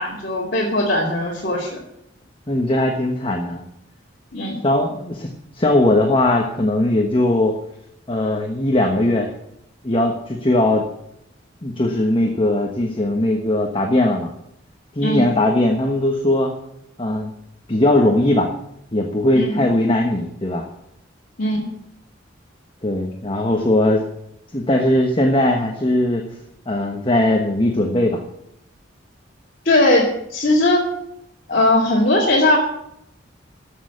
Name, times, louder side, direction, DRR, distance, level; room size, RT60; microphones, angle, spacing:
voice 1, 0.0-1.8 4.3-4.6 15.0-15.3 19.3-19.6 21.4-21.6 29.6-30.9 31.5-32.6, left 1 dB, 50° left, -6 dB, 2.5 m, -19 dB
voice 2, 2.5-3.6 4.6-5.3 5.6-7.5 8.1-9.3 9.8-10.8 11.6-14.3 14.9-16.5 17.0-17.3 17.7-18.5 18.9-20.6 22.8-24.0 24.5-26.2 26.7-28.2, left 1 dB, 25° left, 2 dB, 1.2 m, -19 dB
14.0 x 6.7 x 8.3 m, 0.77 s
head